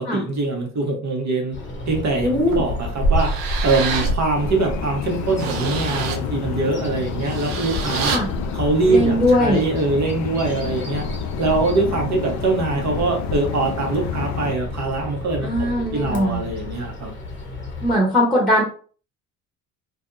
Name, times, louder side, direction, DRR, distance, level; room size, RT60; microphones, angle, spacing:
voice 1, 0.0-1.6 1.9-3.3 3.6-8.2 8.5-11.0 11.4-15.5 15.9-17.1, right 3 dB, 40° right, 1 dB, 1.2 m, -23 dB
Bird vocalization bird call bird song, 1.5-17.9, left 1 dB, 25° left, 1.0 m, -30 dB
voice 2, 2.2-2.6 8.1-8.3 8.9-9.6 15.4-16.4 17.8-18.6, equal, ahead, -3 dB, 1.2 m, -19 dB
sound 1, 2.5-2.6 3.1-4.2 4.7-4.8 5.2-6.2 7.1-8.2, right 6 dB, 75° right, 0.7 m, -28 dB
sound 2, 4.3-14.6, left 8 dB, 45° left, 0.5 m, -30 dB
2.6 x 2.3 x 2.7 m, 0.41 s
hypercardioid pair, 60°, 42 cm